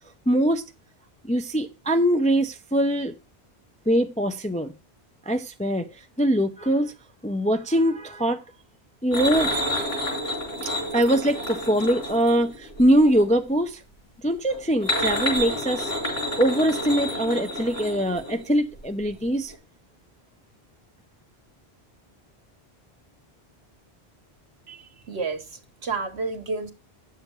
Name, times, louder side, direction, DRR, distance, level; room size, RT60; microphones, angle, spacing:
voice 1, 0.3-0.6 1.2-3.1 3.9-4.7 5.3-6.9 7.2-8.4 9.0-9.5 10.9-13.8 14.2-15.9 16.4-19.5, right 1 dB, 10° left, 0.4 m, -22 dB
sound 1, 9.1-13.3 14.5-18.8 19.0-19.2 19.5-19.6, equal, 75° left, 4.5 m, -29 dB
voice 2, 24.7-26.7, right 4 dB, 75° right, 1.6 m, -31 dB
9.3 x 7.0 x 4.5 m
omnidirectional pair, 1.1 m